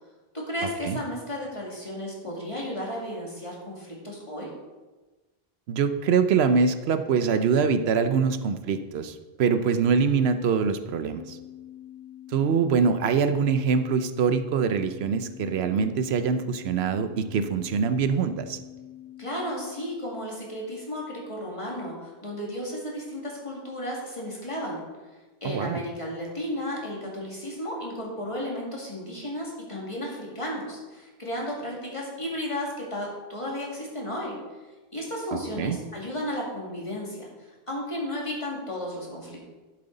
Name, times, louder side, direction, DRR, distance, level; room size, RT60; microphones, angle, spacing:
voice 1, 0.3-4.5 19.2-24.8 25.4-34.4 34.9-39.5, equal, 30° left, -3 dB, 2.3 m, -34 dB
voice 2, 5.7-11.4 12.3-18.6 25.4-25.8 35.3-35.8, right 6 dB, 80° right, 10 dB, 0.9 m, -24 dB
sound 1, 11.2-19.9, left 12 dB, 55° left, 0.8 m, -45 dB
11.0 x 7.8 x 3.9 m, 1.2 s
omnidirectional pair, 1.1 m